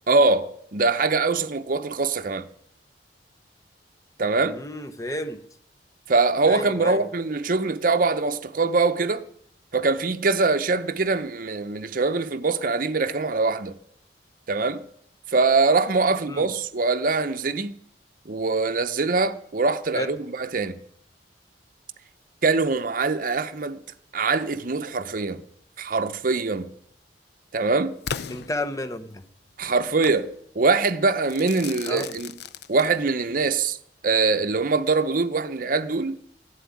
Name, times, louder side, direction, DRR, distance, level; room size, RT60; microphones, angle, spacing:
voice 1, 0.1-2.5 4.2-4.6 6.1-9.3 9.7-13.8 14.5-14.8 15.3-17.7 18.3-20.8 22.4-23.8 24.1-25.4 25.8-26.7 27.5-28.0 29.6-32.3 32.7-33.8 34.0-36.2, right 3 dB, 50° right, 0.7 m, -23 dB
voice 2, 4.4-5.4 6.5-7.0 16.3-16.5 19.9-20.1 28.3-29.2 31.9-32.1, left 1 dB, 20° left, 0.9 m, -31 dB
Crackle / Fireworks, 28.1-29.2 30.0-30.3 31.3-33.3, left 7 dB, 65° left, 0.5 m, -36 dB
14.0 x 7.6 x 9.6 m
head